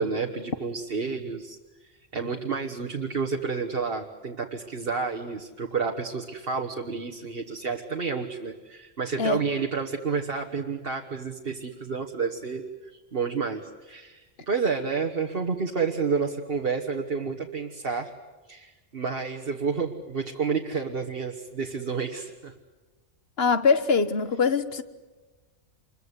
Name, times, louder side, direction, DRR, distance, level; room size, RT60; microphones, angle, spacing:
voice 1, 0.0-18.1 18.5-22.5, right 5 dB, 55° right, 1.6 m, -30 dB
voice 2, 23.4-24.8, left 5 dB, 55° left, 1.5 m, -23 dB
26.5 x 22.5 x 8.3 m
omnidirectional pair, 1.2 m